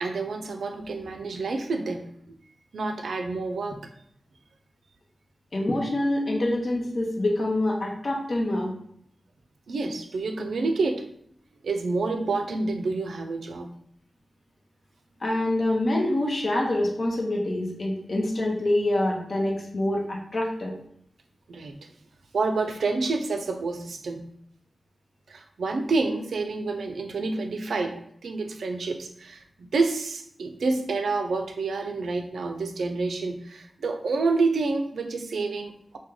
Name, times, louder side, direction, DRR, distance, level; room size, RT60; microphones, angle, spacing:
voice 1, 0.0-2.1 2.7-3.8 9.7-11.1 11.6-13.7 21.5-21.8 22.3-24.3 25.3-36.0, right 3 dB, 85° right, 6 dB, 0.3 m, -28 dB
voice 2, 5.5-8.7 15.2-20.7, left 1 dB, 60° left, -1 dB, 0.8 m, -26 dB
3.0 x 2.1 x 3.6 m, 0.68 s
cardioid pair, 50°, 0 cm